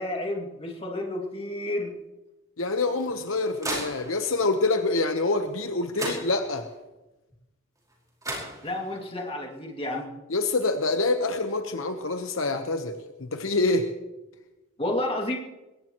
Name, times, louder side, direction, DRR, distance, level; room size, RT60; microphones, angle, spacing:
voice 1, 0.0-2.0 8.6-10.1 14.8-15.4, left 1 dB, 30° left, 0 dB, 2.5 m, -30 dB
voice 2, 2.6-6.7 10.3-12.9 13.2-13.8, left 3 dB, 70° left, 6 dB, 1.1 m, -26 dB
sound 1, 2.8-4.4 5.6-5.7 5.9-6.8 7.9-8.0 8.2-9.1, right 1 dB, 15° right, 5.0 m, -36 dB
21.5 x 18.0 x 3.1 m, 1.0 s
head